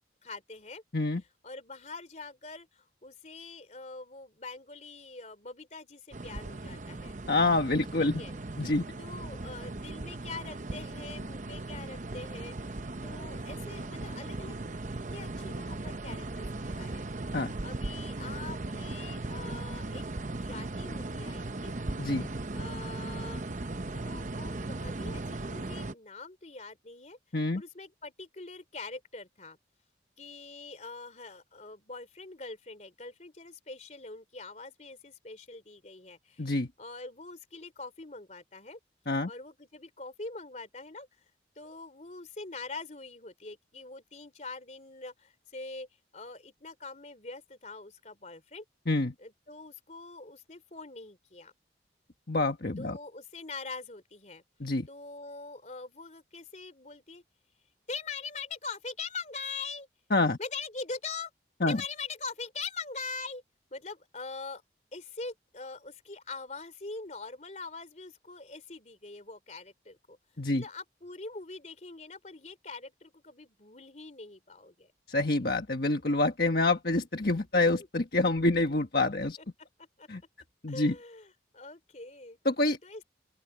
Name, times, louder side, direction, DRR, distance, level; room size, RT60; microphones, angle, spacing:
voice 1, 0.2-0.8 1.4-7.2 8.0-8.4 9.0-14.6 15.1-17.1 17.4-21.7 22.5-23.6 23.9-27.2 27.5-29.6 30.2-36.5 36.8-38.8 39.3-41.1 41.5-45.9 46.1-48.6 49.2-51.5 52.8-54.4 54.9-57.2 57.9-59.9 60.4-61.3 61.7-63.4 63.7-64.6 64.9-70.2 70.5-74.9 79.8-80.1 80.7-82.4 82.8-83.0, left 4 dB, 40° left, 3.2 m, -43 dB
sound 1, 6.1-25.9, right 2 dB, 45° right, 0.8 m, -38 dB
voice 2, 7.3-8.2 8.6-8.8 17.3-17.5 22.0-22.3 27.3-27.6 36.4-36.7 39.1-39.3 48.9-49.1 52.3-53.0 54.6-54.9 60.1-60.4 61.6-61.8 70.4-70.6 75.1-79.4 80.1-80.2 80.6-80.9 82.4-82.8, left 2 dB, 55° left, 1.4 m, -27 dB
open air
head